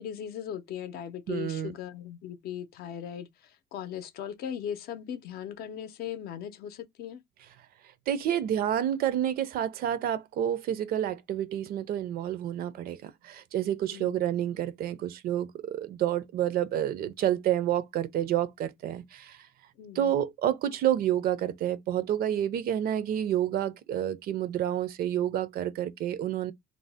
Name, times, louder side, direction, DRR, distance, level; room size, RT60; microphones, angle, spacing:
voice 1, 0.0-7.2 13.9-14.2 19.8-20.2, left 9 dB, 65° left, 0.5 m, -38 dB
voice 2, 1.3-1.7 8.1-19.4 19.9-26.5, right 11 dB, 60° right, 0.4 m, -29 dB
2.6 x 2.0 x 3.3 m
cardioid pair, 110°, 17 cm